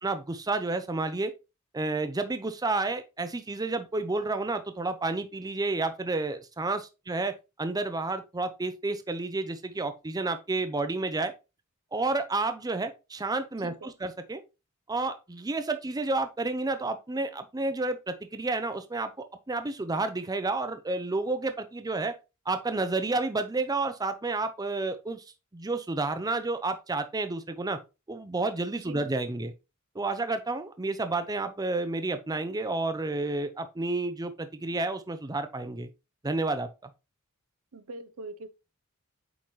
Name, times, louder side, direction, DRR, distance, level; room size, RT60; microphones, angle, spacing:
voice 1, 0.0-1.3 1.7-11.3 11.9-14.4 14.9-22.2 22.5-25.2 25.5-27.8 28.1-29.5 29.9-35.9 36.2-36.7, right 3 dB, 15° right, 0.5 m, -30 dB
voice 2, 37.7-38.5, right 2 dB, 70° right, 0.7 m, -42 dB
8.5 x 3.9 x 3.1 m
head